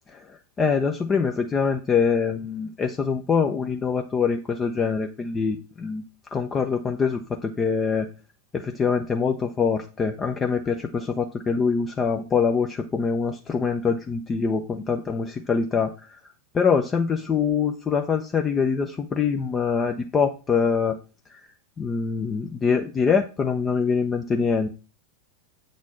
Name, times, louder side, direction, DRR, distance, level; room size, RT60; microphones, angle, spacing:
voice 1, 0.1-6.0 6.3-8.1 8.5-16.2 16.5-21.0 21.8-24.7, left 5 dB, 20° left, 4 dB, 0.7 m, -24 dB
8.2 x 4.2 x 6.3 m, 0.33 s
figure-of-eight pair, 90°, 0 cm